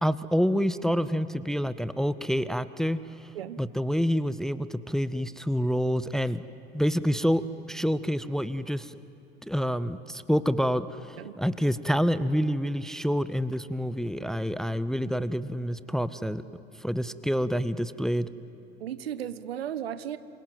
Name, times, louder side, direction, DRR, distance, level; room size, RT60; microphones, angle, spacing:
voice 1, 0.0-3.0 3.6-6.4 6.7-7.4 7.7-8.9 9.5-16.4 16.8-18.3, equal, ahead, 15 dB, 0.6 m, -27 dB
voice 2, 18.8-20.2, right 10 dB, 70° right, 15 dB, 1.0 m, -35 dB
27.0 x 26.0 x 7.8 m, 2.9 s
figure-of-eight pair, 65°, 31 cm